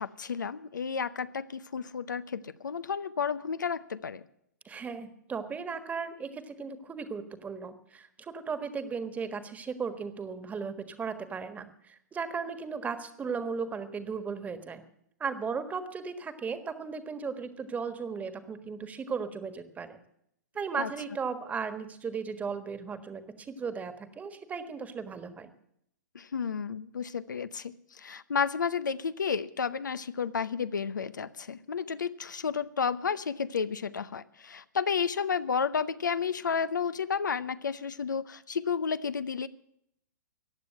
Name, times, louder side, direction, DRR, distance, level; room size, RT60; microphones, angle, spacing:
voice 1, 0.0-4.2 20.8-20.9 26.1-39.5, left 6 dB, 85° left, 14 dB, 0.7 m, -32 dB
voice 2, 4.6-14.8 15.2-20.0 20.5-25.5, right 5 dB, 15° right, 10 dB, 1.5 m, -36 dB
15.0 x 9.6 x 7.8 m, 0.73 s
hypercardioid pair, 125°, 10 cm